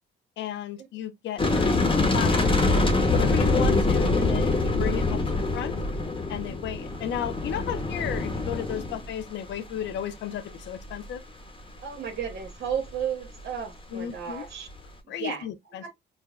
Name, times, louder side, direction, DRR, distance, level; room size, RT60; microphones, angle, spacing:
voice 1, 0.4-1.9 2.1-5.7 6.3-11.2 13.9-14.4 15.1-15.8, left 10 dB, 65° left, 0.5 m, -34 dB
sound 1, 1.4-9.2 9.5-9.6 9.8-9.9, left 2 dB, 25° left, 1.0 m, -24 dB
voice 2, 11.8-14.7 15.2-15.5 15.8-15.9, right 7 dB, 60° right, 1.2 m, -33 dB
4.7 x 2.1 x 2.4 m
cardioid pair, 90°, 20 cm